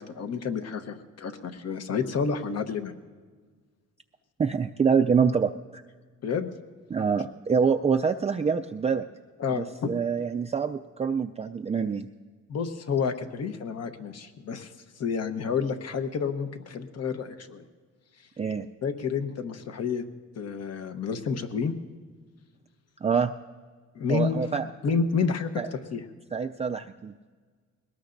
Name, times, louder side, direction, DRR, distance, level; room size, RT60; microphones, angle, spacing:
voice 1, 0.0-3.0 6.2-6.5 9.4-9.9 12.5-14.7 15.0-17.6 18.8-20.0 20.4-21.7 23.9-24.5 24.8-26.0, left 5 dB, 55° left, 8 dB, 1.1 m, -29 dB
voice 2, 4.4-5.8 6.9-9.0 9.5-12.1 18.4-18.7 23.0-23.3 24.1-24.6 25.6-25.7 26.3-27.1, right 6 dB, 20° right, 5 dB, 0.4 m, -26 dB
21.5 x 18.5 x 2.6 m, 1.5 s
cardioid pair, 90°, 30 cm